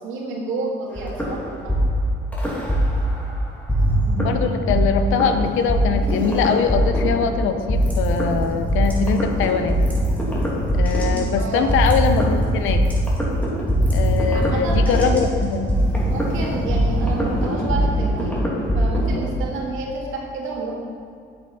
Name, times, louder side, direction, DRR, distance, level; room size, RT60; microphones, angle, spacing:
voice 1, 0.0-1.7 11.4-11.8 14.3-15.1 16.1-18.4 18.7-20.7, right 3 dB, 90° right, -2 dB, 2.0 m, -30 dB
sound 1, 1.0-3.3 3.7-19.3, equal, 5° left, 2.5 m, -21 dB
voice 2, 4.2-9.8 10.7-12.8 13.9-15.7, left 6 dB, 85° left, 7 dB, 0.8 m, -22 dB
8.5 x 8.3 x 4.3 m, 2.4 s
cardioid pair, 90°, 20 cm